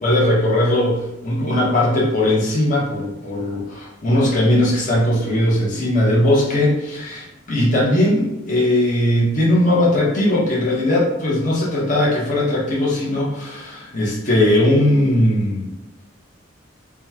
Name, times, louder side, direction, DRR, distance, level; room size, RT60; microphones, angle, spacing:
voice 1, 0.0-15.7, left 1 dB, 40° left, -5 dB, 1.0 m, -19 dB
5.3 x 2.4 x 2.9 m, 0.95 s
head